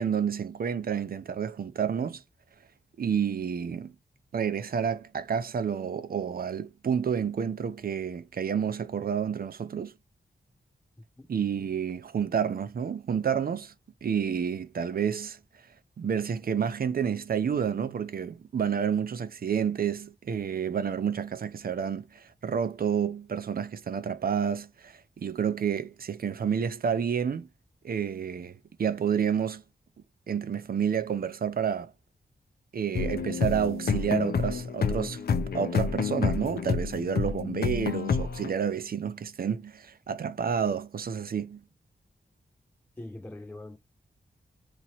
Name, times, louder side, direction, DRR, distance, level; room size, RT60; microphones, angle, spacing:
voice 1, 0.0-2.2 3.0-3.9 4.3-9.9 11.3-13.7 14.0-15.4 16.0-27.5 27.8-29.6 30.3-31.9 32.7-35.2 35.5-41.6, right 7 dB, 55° right, 0.6 m, -29 dB
sound 1, 32.9-38.5, left 5 dB, 60° left, 0.6 m, -29 dB
voice 2, 43.0-43.8, left 1 dB, 10° left, 0.4 m, -42 dB
3.0 x 2.9 x 4.1 m
wide cardioid pair, 105°, 18 cm